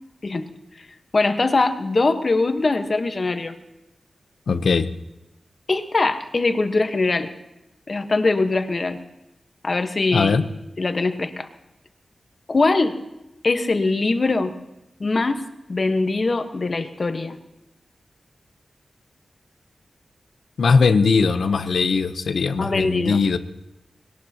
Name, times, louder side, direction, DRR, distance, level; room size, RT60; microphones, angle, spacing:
voice 1, 1.1-3.5 5.7-7.3 7.9-9.0 9.6-10.4 10.8-11.5 12.5-13.0 13.4-14.5 15.0-17.4 22.6-23.2, left 3 dB, 45° left, 7 dB, 1.2 m, -22 dB
voice 2, 4.5-4.9 10.1-10.5 20.6-23.4, left 4 dB, 90° left, 11 dB, 0.8 m, -19 dB
21.5 x 18.0 x 2.9 m, 0.92 s
wide cardioid pair, 90°, 0 cm